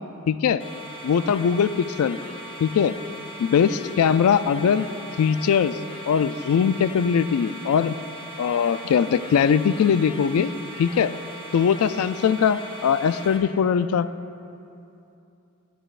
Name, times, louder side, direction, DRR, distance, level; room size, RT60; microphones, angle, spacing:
voice 1, 0.3-0.6 1.0-1.7 2.0-2.2 2.6-2.9 3.4-4.9 5.2-5.8 6.1-8.0 8.4-10.5 10.8-11.1 11.5-14.1, left 7 dB, 80° left, 14 dB, 0.3 m, -21 dB
sound 1, 0.6-13.4, equal, 25° left, 1.1 m, -39 dB
17.5 x 10.0 x 2.4 m, 2.7 s
head